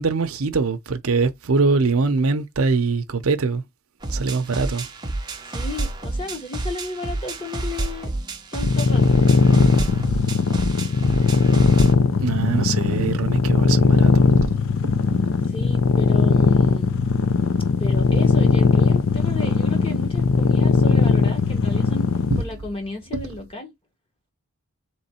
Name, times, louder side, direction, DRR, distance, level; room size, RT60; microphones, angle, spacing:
voice 1, 0.0-3.6 4.1-4.9 12.2-14.6 14.8-15.2 22.3-22.4 23.1-23.2, right 4 dB, 70° right, 0.6 m, -23 dB
sound 1, 4.0-12.0, right 2 dB, 20° right, 0.7 m, -29 dB
voice 2, 5.5-8.1 8.5-9.1 15.5-16.9 17.8-22.1 22.4-23.7, left 2 dB, 25° left, 1.2 m, -33 dB
sound 2, 8.6-22.4, left 4 dB, 60° left, 0.6 m, -18 dB
3.9 x 3.0 x 4.3 m
head